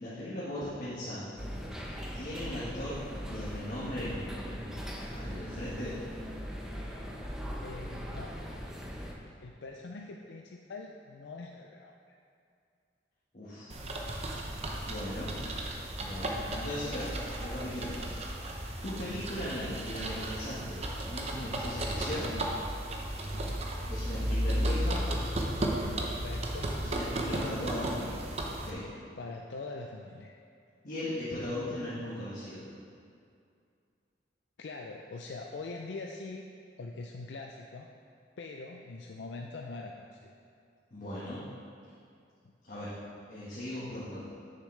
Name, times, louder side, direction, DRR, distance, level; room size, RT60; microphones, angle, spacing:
voice 1, 0.0-1.4 2.1-4.8 5.1-6.0 13.3-13.7 14.9-15.3 16.0-18.2 18.4-22.4 23.9-25.1 26.8-28.9 30.8-32.6 40.9-41.4 42.6-42.9 43.3-44.3, left 1 dB, 45° left, -10 dB, 1.4 m, -38 dB
sound 1, 1.4-9.1, equal, 5° right, 0.7 m, -40 dB
voice 2, 7.6-8.4 9.4-11.9 19.4-19.5 23.3-23.6 26.0-26.8 29.2-30.3 34.6-36.5 36.8-37.9 38.4-40.3, left 3 dB, 70° left, 1 dB, 0.4 m, -43 dB
sound 2, 13.7-28.7, right 1 dB, 35° right, 0.7 m, -34 dB
9.5 x 6.7 x 3.2 m, 2.4 s
head